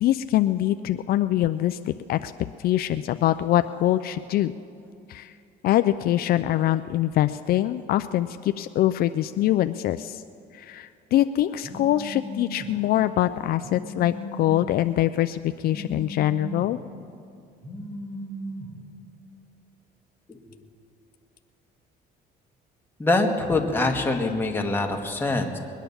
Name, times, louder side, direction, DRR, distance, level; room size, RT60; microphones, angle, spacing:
voice 1, 0.0-2.3 2.6-4.5 5.1-5.3 5.6-10.2 10.5-16.8, left 13 dB, 65° left, 10 dB, 0.4 m, -24 dB
Telephone, 11.6-12.7 13.6-14.7 15.6-16.7 17.6-18.7, right 1 dB, 55° right, 5.3 m, -37 dB
voice 2, 23.0-25.6, left 2 dB, 15° left, 1 dB, 1.7 m, -24 dB
22.0 x 9.1 x 7.0 m, 2.4 s
cardioid pair, 110°, 17 cm